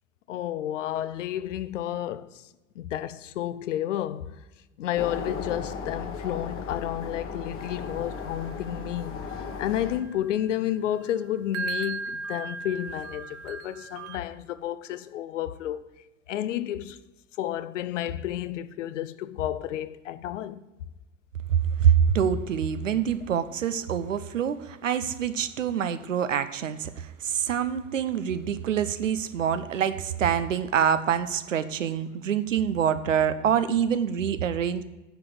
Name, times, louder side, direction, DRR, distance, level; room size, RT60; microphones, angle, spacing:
voice 1, 0.3-2.4 2.8-4.4 4.8-9.2 9.6-15.9 16.3-17.0 17.4-20.6, left 11 dB, 80° left, 0.6 m, -31 dB
sound 1, 5.0-10.0, left 5 dB, 35° left, 1.2 m, -36 dB
sound 2, 7.6-14.2, right 3 dB, 40° right, 0.8 m, -38 dB
voice 2, 21.5-34.8, right 8 dB, 90° right, 0.7 m, -25 dB
9.2 x 5.1 x 7.6 m
hypercardioid pair, 85°, 37 cm